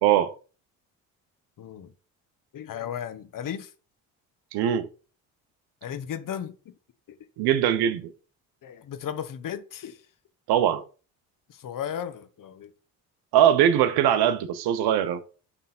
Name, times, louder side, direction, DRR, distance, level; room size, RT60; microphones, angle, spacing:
voice 1, 0.0-0.3 4.5-4.9 7.4-8.1 10.5-10.8 13.3-15.2, right 10 dB, 80° right, 1.0 m, -21 dB
voice 2, 1.6-1.9 2.5-3.7 5.8-6.7 7.1-7.2 8.6-10.0 11.5-12.7, left 9 dB, 55° left, 1.3 m, -35 dB
9.9 x 3.6 x 4.3 m
supercardioid pair, 70°, 38 cm